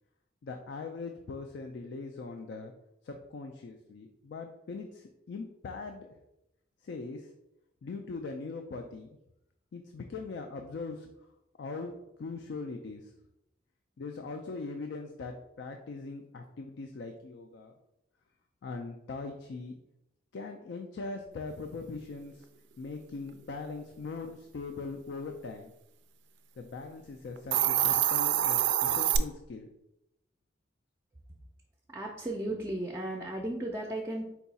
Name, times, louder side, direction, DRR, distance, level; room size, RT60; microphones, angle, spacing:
voice 1, 0.4-2.7 3.0-6.1 6.8-7.3 7.8-9.2 9.7-11.3 11.6-13.1 14.0-17.7 18.6-19.7 20.3-22.5 22.8-25.7 26.6-29.7, left 3 dB, 70° left, 4 dB, 0.4 m, -41 dB
Hiss, 27.4-29.2, right 11 dB, 85° right, 0.3 m, -26 dB
voice 2, 31.9-34.2, right 1 dB, 15° right, -1 dB, 0.4 m, -35 dB
4.5 x 2.3 x 4.0 m, 0.86 s
head